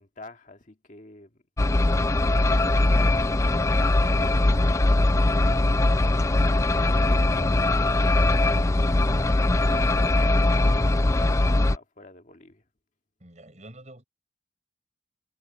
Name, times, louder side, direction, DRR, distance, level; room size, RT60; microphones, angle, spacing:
voice 1, 0.0-1.4 1.9-2.5 3.0-5.7 6.8-8.3 8.9-12.6, left 2 dB, 45° left, 2.0 m, -48 dB
sound 1, 1.6-11.8, left 2 dB, 15° left, 0.4 m, -21 dB
voice 2, 13.2-14.0, right 1 dB, 40° right, 6.3 m, -47 dB
head